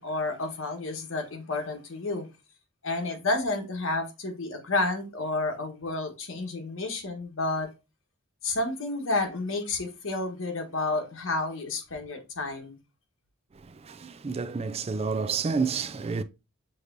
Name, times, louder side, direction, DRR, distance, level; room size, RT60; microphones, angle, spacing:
voice 1, 0.0-2.3 2.8-7.7 8.4-12.8, left 2 dB, 85° left, 1.3 m, -30 dB
voice 2, 13.6-16.2, right 5 dB, 30° right, 0.4 m, -30 dB
6.6 x 3.1 x 2.6 m
head